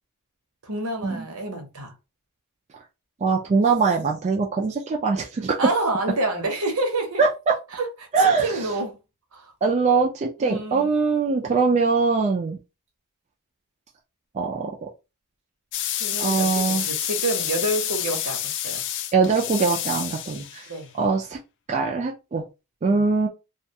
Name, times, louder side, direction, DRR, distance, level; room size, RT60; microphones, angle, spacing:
voice 1, 0.6-1.9 5.6-7.2 7.7-7.9 8.2-9.0 9.3-9.5 10.4-10.9 16.0-18.4 18.6-18.8 20.7-20.9 22.9-23.1, right 2 dB, 70° right, 0.8 m, -28 dB
voice 2, 3.2-5.6 7.2-7.5 8.1-8.6 9.6-12.6 14.3-14.7 16.2-16.8 19.1-20.7 21.0-21.4 21.7-22.4 22.8-23.3, right 4 dB, 30° right, 0.3 m, -22 dB
sound 1, 15.7-20.8, left 11 dB, 55° left, 0.3 m, -28 dB
2.4 x 2.2 x 2.7 m
head